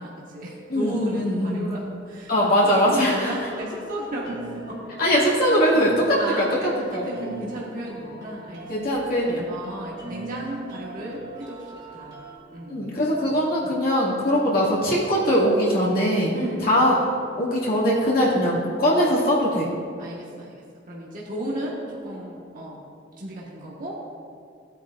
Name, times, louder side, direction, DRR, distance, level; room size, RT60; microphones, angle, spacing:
voice 1, 0.0-2.6 2.8-4.4 4.7-5.4 6.2-6.8 7.0-8.7 9.4-12.2 12.5-12.9 16.3-16.8 20.0-22.8 23.2-24.0, right 1 dB, 45° right, -5 dB, 1.4 m, -34 dB
voice 2, 0.7-1.7 2.3-3.3 5.0-6.5 6.9-7.4 8.7-9.4 12.7-16.3 16.7-17.0 17.4-19.7, equal, 50° left, -6 dB, 2.2 m, -21 dB
sound 1, 3.1-12.4, right 3 dB, 25° right, 2.2 m, -41 dB
17.0 x 9.0 x 2.5 m, 2.3 s
head